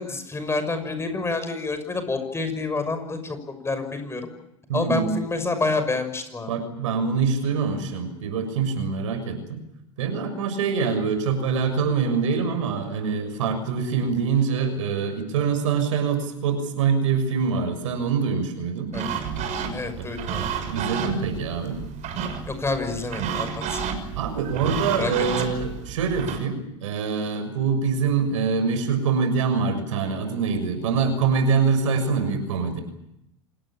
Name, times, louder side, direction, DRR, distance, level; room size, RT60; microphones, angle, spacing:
voice 1, 0.0-4.3 4.7-6.5 18.9-19.1 19.7-20.5 22.5-23.8 24.9-25.5, left 3 dB, 15° left, 9 dB, 6.2 m, -28 dB
voice 2, 4.7-5.2 6.5-9.6 10.0-19.0 20.0-20.1 20.6-21.8 24.2-32.8, right 5 dB, 75° right, 9 dB, 6.6 m, -24 dB
sound 1, 18.9-26.4, right 7 dB, 45° right, 6.3 m, -31 dB
27.5 x 19.0 x 8.8 m, 0.82 s
hypercardioid pair, 90°, 16 cm